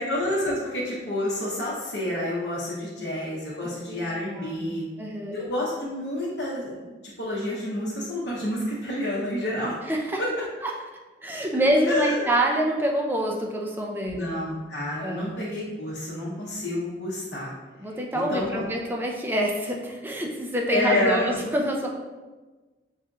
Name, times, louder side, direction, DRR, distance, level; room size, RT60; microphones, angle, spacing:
voice 1, 0.0-4.8 5.3-6.8 7.2-9.7 10.2-10.3 11.8-12.3 14.0-17.5 18.1-18.6 20.7-21.4, left 1 dB, 80° left, -8 dB, 0.8 m, -29 dB
voice 2, 4.3-5.4 9.9-10.2 11.2-14.3 15.0-15.3 17.8-21.9, right 1 dB, 10° right, 0 dB, 0.4 m, -26 dB
4.7 x 2.8 x 2.3 m, 1.2 s
head